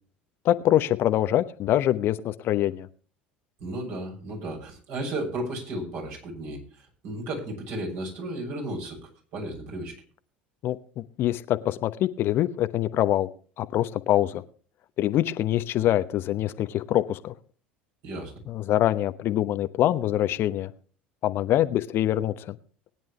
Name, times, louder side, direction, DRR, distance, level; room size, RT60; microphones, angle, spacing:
voice 1, 0.4-2.9 10.6-13.3 13.6-14.4 15.0-17.3 18.5-20.7 21.2-22.6, left 13 dB, 45° left, 12 dB, 0.9 m, -24 dB
voice 2, 3.6-9.0 9.3-9.9 18.0-18.3, right 1 dB, 50° right, 1 dB, 7.3 m, -34 dB
20.5 x 10.5 x 3.3 m, 0.41 s
figure-of-eight pair, 70°, 5 cm